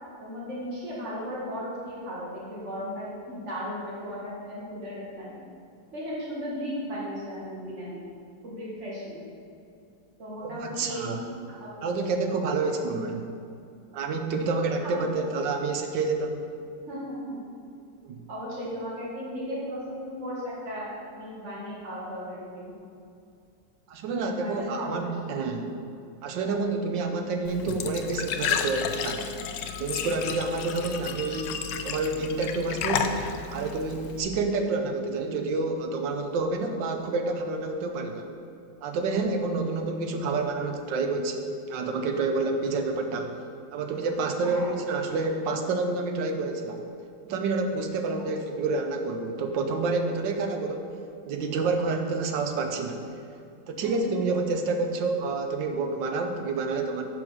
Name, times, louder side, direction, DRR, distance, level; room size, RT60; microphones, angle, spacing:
voice 1, 0.2-5.4 5.9-8.1 8.4-9.2 10.2-11.2 11.5-12.1 12.6-12.8 14.8-15.3 16.9-17.4 18.3-22.7 24.2-25.1 26.4-26.6 44.4-44.7 53.8-53.9, equal, 40° right, -6 dB, 2.1 m, -36 dB
voice 2, 10.4-11.2 11.8-13.3 13.9-16.5 18.0-18.3 23.9-25.7 26.2-29.3 29.8-38.3 38.8-43.3 43.7-46.8 47.2-50.9 51.2-53.0 53.7-57.0, right 3 dB, 85° right, 4 dB, 1.5 m, -28 dB
Glass / Trickle dribble / Fill (with liquid), 27.4-34.2, left 7 dB, 85° left, 1.2 m, -32 dB
7.2 x 5.0 x 6.3 m, 2.4 s
omnidirectional pair, 1.9 m